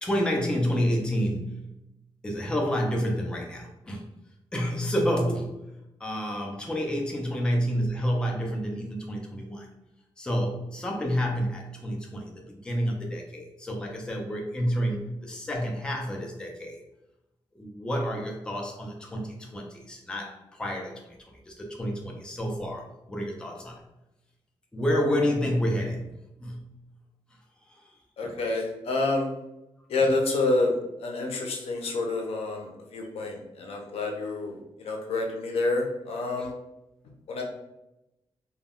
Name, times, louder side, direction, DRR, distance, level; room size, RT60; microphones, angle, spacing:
voice 1, 0.0-1.6 2.2-4.0 4.5-5.6 6.0-9.7 10.2-16.8 17.6-21.1 21.5-22.8 23.1-23.8 24.7-26.1 26.4-26.7 28.2-28.3, equal, 10° left, 0 dB, 0.4 m, -29 dB
voice 2, 28.2-29.3 29.9-36.5 37.3-37.4, left 2 dB, 80° left, 2 dB, 0.5 m, -28 dB
2.2 x 2.1 x 3.5 m, 0.91 s
wide cardioid pair, 165°, 10 cm